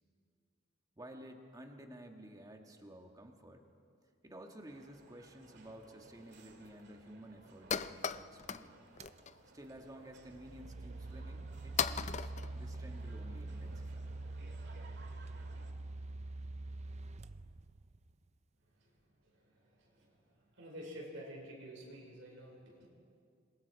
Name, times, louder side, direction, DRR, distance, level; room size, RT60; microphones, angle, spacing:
voice 1, 1.0-3.6 4.2-8.8 9.5-14.1, right 1 dB, 20° right, 3 dB, 1.7 m, -53 dB
sound 1, 4.7-15.7, right 2 dB, 60° right, 2.1 m, -60 dB
sound 2, 5.6-5.7 6.3-6.4 6.6-6.8 7.1-7.2 7.4-8.7 8.9-9.3 9.8-9.9 10.6-10.7 11.3-11.4 11.8-13.3, left 7 dB, 35° left, 0.5 m, -37 dB
sound 3, 9.0-9.2 10.1-18.1, right 2 dB, 35° right, 0.5 m, -45 dB
voice 2, 20.6-22.9, equal, 90° right, -3 dB, 5.2 m, -49 dB
26.5 x 21.5 x 4.7 m, 2.3 s
head